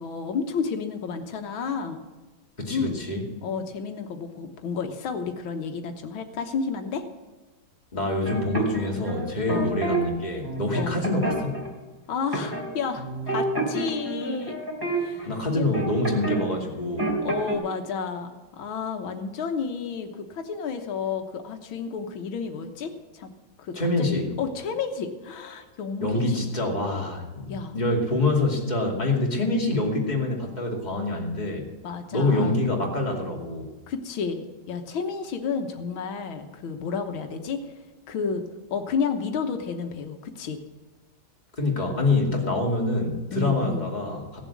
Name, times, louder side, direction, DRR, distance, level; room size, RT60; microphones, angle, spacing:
voice 1, 0.0-2.0 2.7-3.0 3.4-7.0 9.5-9.7 10.7-11.0 12.1-14.6 14.9-15.7 17.2-23.3 23.6-26.4 27.5-27.8 31.8-32.6 33.9-38.5 38.7-40.6 43.3-43.9, left 5 dB, 90° left, 6 dB, 2.0 m, -31 dB
voice 2, 2.6-3.2 7.9-11.6 15.2-17.1 23.7-24.2 26.0-31.6 32.1-33.7 41.6-44.4, left 2 dB, 20° left, -1 dB, 2.6 m, -26 dB
sound 1, 8.2-10.0 10.4-11.7 12.3-12.7 13.0-16.4 16.7-17.5, right 2 dB, 10° right, 3.1 m, -29 dB
17.0 x 7.3 x 8.4 m, 1.2 s
omnidirectional pair, 2.1 m